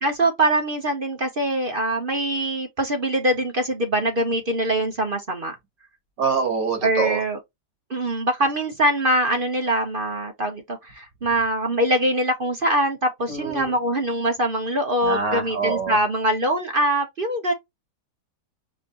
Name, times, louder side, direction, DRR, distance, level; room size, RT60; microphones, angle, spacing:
voice 1, 0.0-5.5 6.8-7.4 7.9-17.5, right 1 dB, 40° right, 1.0 m, -23 dB
voice 2, 6.2-7.2 13.3-13.7 15.0-16.0, right 5 dB, 85° right, 2.3 m, -25 dB
5.4 x 3.9 x 2.5 m
omnidirectional pair, 1.9 m